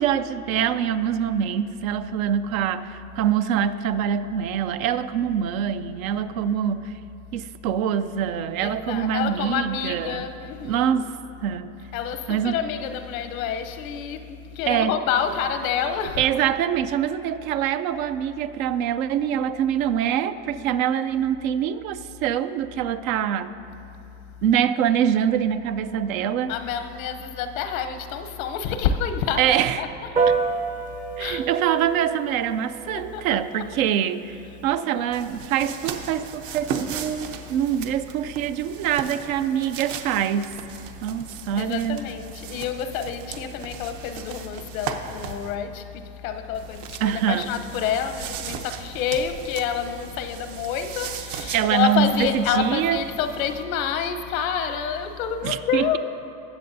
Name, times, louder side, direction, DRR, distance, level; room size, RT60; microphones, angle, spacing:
voice 1, 0.0-6.9 7.3-10.2 10.6-11.1 11.4-11.7 12.3-12.5 14.7-14.9 16.2-23.5 24.4-26.5 29.4-29.8 31.2-34.4 34.6-40.6 41.0-42.0 47.0-47.5 51.5-53.0 55.4-55.9, right 9 dB, 85° right, 0.6 m, -24 dB
voice 2, 8.6-11.0 11.8-16.5 24.2-24.3 26.5-30.4 31.1-31.5 32.9-33.7 34.3-34.6 41.6-56.0, left 7 dB, 85° left, 0.9 m, -28 dB
Piano, 30.2-39.9, right 5 dB, 20° right, 0.4 m, -32 dB
sound 1, 35.1-45.5 46.5-53.6, right 7 dB, 70° right, 0.9 m, -37 dB
20.0 x 7.8 x 2.7 m
supercardioid pair, 125°, 40 cm